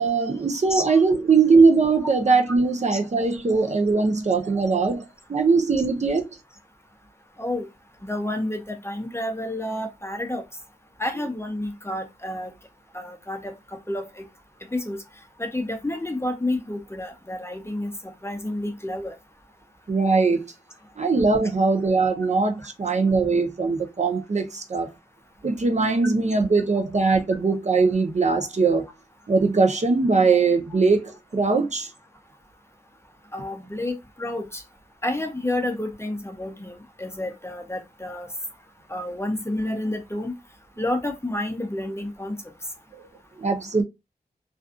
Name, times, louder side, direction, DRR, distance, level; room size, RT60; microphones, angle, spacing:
voice 1, 0.0-5.0 5.3-6.2 19.9-20.4 21.0-24.9 25.4-28.8 29.3-31.9 43.4-43.8, right 4 dB, 45° right, 0.6 m, -21 dB
voice 2, 8.0-10.4 11.0-12.5 12.9-13.5 13.9-14.2 14.7-15.0 15.4-17.9 18.2-19.1 33.3-34.6 35.0-38.3 38.9-40.3 40.8-42.3, left 1 dB, 15° left, 0.5 m, -29 dB
2.5 x 2.3 x 2.4 m
wide cardioid pair, 55°, 16 cm